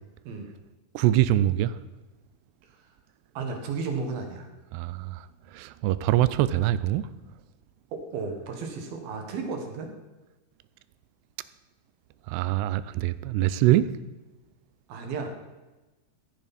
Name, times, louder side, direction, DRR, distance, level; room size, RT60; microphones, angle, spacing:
voice 1, 0.9-1.8 4.7-5.3 5.5-7.1 12.3-13.9, right 14 dB, 90° right, 2.7 m, -24 dB
voice 2, 3.3-4.5 7.9-9.9 14.9-15.3, right 4 dB, 70° right, 3.1 m, -33 dB
15.5 x 9.1 x 4.1 m
omnidirectional pair, 4.6 m